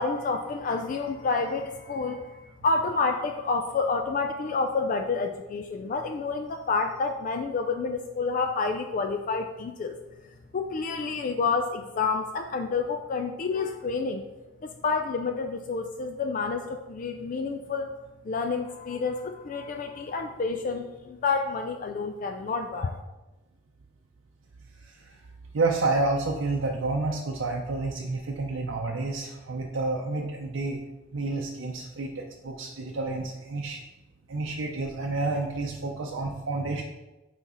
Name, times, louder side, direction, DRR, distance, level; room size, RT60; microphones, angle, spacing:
voice 1, 0.0-10.0 10.5-14.3 14.6-17.9 18.2-23.0, left 4 dB, 45° left, 5 dB, 0.4 m, -29 dB
voice 2, 24.9-25.2 25.5-30.8 31.1-33.8 34.3-36.8, right 3 dB, 90° right, 0 dB, 0.6 m, -29 dB
6.0 x 4.1 x 4.3 m, 1.1 s
head